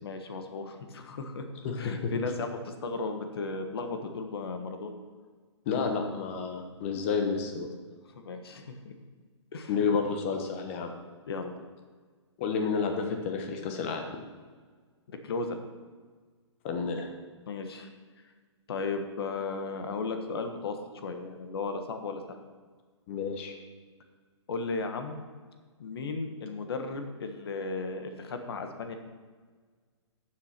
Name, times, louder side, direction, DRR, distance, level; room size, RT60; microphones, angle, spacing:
voice 1, 0.0-1.5 1.8-4.9 8.1-8.9 9.5-9.9 11.3-11.5 15.1-15.6 17.5-17.9 18.7-22.4 24.5-25.2 25.8-28.9, left 3 dB, 55° left, 6 dB, 1.3 m, -35 dB
voice 2, 1.6-2.1 5.7-7.7 9.7-10.9 12.4-14.0 16.6-17.1 23.1-23.5, left 5 dB, 25° left, 4 dB, 1.1 m, -30 dB
12.5 x 7.6 x 4.4 m, 1.5 s
hypercardioid pair, 165°, 15 cm